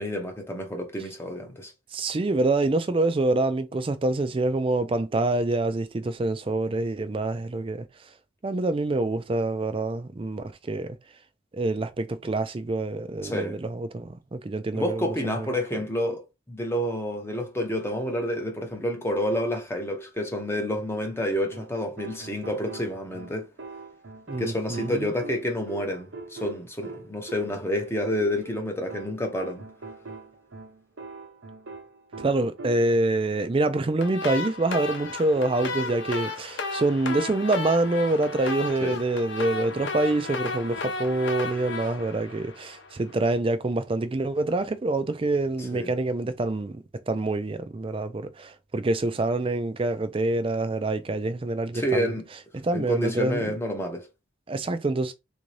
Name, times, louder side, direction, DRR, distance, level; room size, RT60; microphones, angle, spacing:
voice 1, 0.0-1.7 13.2-13.6 14.7-23.5 24.4-29.7 38.8-39.0 45.7-45.9 51.7-52.2 52.7-54.1, equal, 10° left, 0.6 m, -29 dB
voice 2, 1.9-7.9 8.4-11.0 11.5-15.1 15.4-15.5 24.3-25.1 32.2-52.2 52.5-53.5 54.5-55.1, right 2 dB, 25° right, 0.3 m, -26 dB
sound 1, 21.5-33.1 35.4-36.2, right 3 dB, 75° right, 0.8 m, -43 dB
sound 2, 34.0-43.1, left 3 dB, 60° left, 0.7 m, -34 dB
3.5 x 2.6 x 3.2 m
head